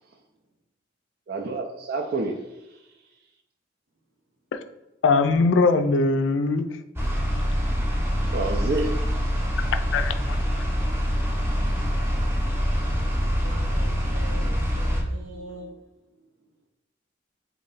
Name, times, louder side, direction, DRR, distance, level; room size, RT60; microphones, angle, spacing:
voice 1, 1.3-2.4 8.2-9.6, right 3 dB, 55° right, 0.4 m, -29 dB
voice 2, 5.0-6.7 9.9-10.6, left 3 dB, 80° left, 0.4 m, -21 dB
sound 1, 7.0-15.0, equal, 15° right, 0.6 m, -25 dB
voice 3, 13.4-15.8, right 1 dB, 85° right, 0.9 m, -42 dB
3.1 x 2.7 x 4.0 m
head